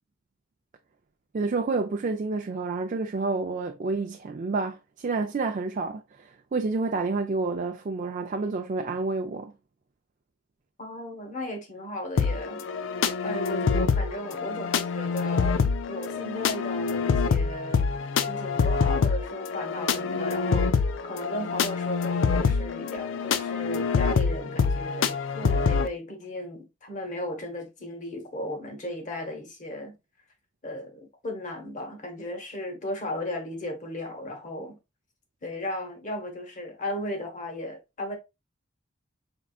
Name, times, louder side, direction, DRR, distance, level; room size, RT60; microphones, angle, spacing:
voice 1, 1.3-9.5, right 3 dB, 45° right, 0.4 m, -29 dB
voice 2, 10.8-12.6 13.2-15.6 15.9-17.9 18.2-30.0 30.6-34.8 35.4-38.2, left 1 dB, 40° left, 1.1 m, -36 dB
sound 1, 12.2-25.9, left 5 dB, 80° left, 0.4 m, -26 dB
4.5 x 3.6 x 2.3 m
head